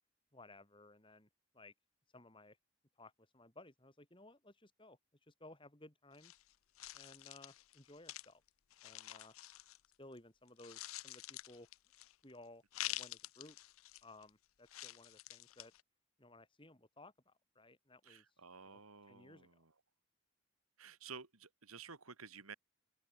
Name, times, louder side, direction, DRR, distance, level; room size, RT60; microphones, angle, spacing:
voice 1, 0.3-1.3 1.5-1.7 2.1-2.6 3.0-6.3 6.9-8.4 8.8-9.3 10.0-11.7 12.2-13.6 14.0-15.7 16.2-18.2 18.6-18.8 19.1-19.6, left 2 dB, 25° left, 3.1 m, -59 dB
sound 1, 6.1-10.2 10.5-12.3 12.7-14.3 14.7-15.8, left 15 dB, 75° left, 0.6 m, -48 dB
voice 2, 18.0-19.7 20.8-22.6, right 5 dB, 90° right, 2.6 m, -53 dB
open air
head